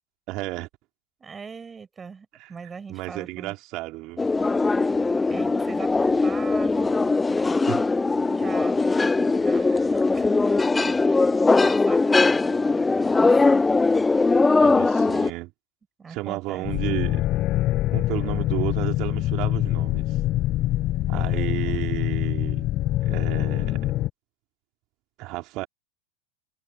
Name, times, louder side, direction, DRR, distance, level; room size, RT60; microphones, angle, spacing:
voice 1, 0.3-0.7 2.4-2.5 2.9-4.3 7.6-7.8 14.6-15.5 16.1-17.2 17.9-20.2 21.1-22.7 23.0-23.9 25.2-25.7, right 20 dB, 40° right, 4.5 m, -32 dB
voice 2, 1.2-3.5 5.3-7.0 7.9-10.3 10.7-11.1 11.5-13.3 16.0-16.7 21.1-21.8, right 5 dB, 15° right, 7.2 m, -41 dB
sound 1, 4.2-15.3, left 3 dB, 10° left, 0.5 m, -20 dB
sound 2, 16.6-24.1, left 15 dB, 35° left, 7.8 m, -24 dB
figure-of-eight pair, 90°, 0 cm